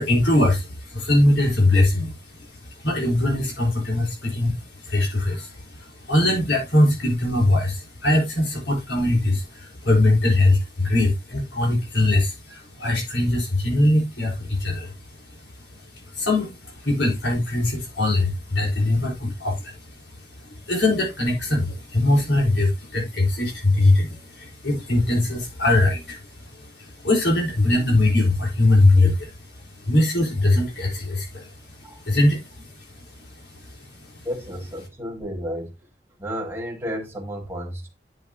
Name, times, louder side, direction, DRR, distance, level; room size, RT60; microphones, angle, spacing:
voice 1, 0.0-15.0 15.4-19.8 20.2-29.3 29.6-31.5 32.0-32.9 33.3-34.2, left 2 dB, 85° left, 4.4 m, -22 dB
voice 2, 34.2-35.7 36.2-37.9, equal, 15° right, 2.2 m, -32 dB
10.0 x 7.3 x 2.9 m
head